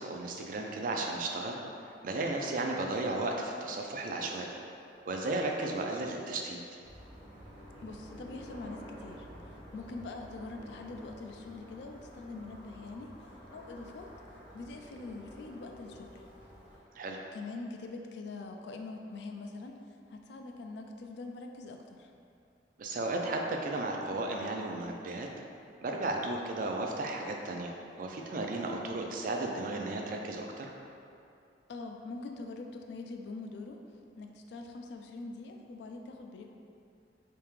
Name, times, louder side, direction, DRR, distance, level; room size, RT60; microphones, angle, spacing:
voice 1, 0.0-1.6 2.0-4.6 5.0-6.6 17.0-17.2 22.8-25.3 25.8-30.7, right 2 dB, 50° right, 1 dB, 0.3 m, -34 dB
sound 1, 6.8-16.8, equal, 10° right, 1.0 m, -50 dB
voice 2, 7.8-14.1 14.5-16.2 17.3-22.1 31.7-33.8 34.2-36.5, left 3 dB, 70° left, 4 dB, 0.3 m, -44 dB
3.4 x 2.8 x 3.1 m, 2.5 s
head